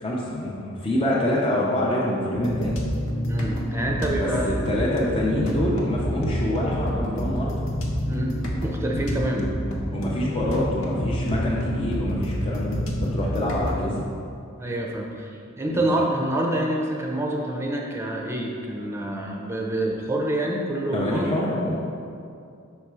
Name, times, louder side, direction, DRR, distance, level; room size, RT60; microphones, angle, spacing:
voice 1, 0.0-2.8 4.1-7.6 9.9-14.0 15.7-15.9 20.9-21.9, left 1 dB, 25° left, -5 dB, 0.7 m, -26 dB
sound 1, 2.3-14.0, equal, 70° left, 0.8 m, -28 dB
voice 2, 3.3-4.6 8.1-9.5 14.6-21.3, right 1 dB, 15° right, 0 dB, 0.6 m, -27 dB
5.8 x 4.2 x 4.7 m, 2.4 s
head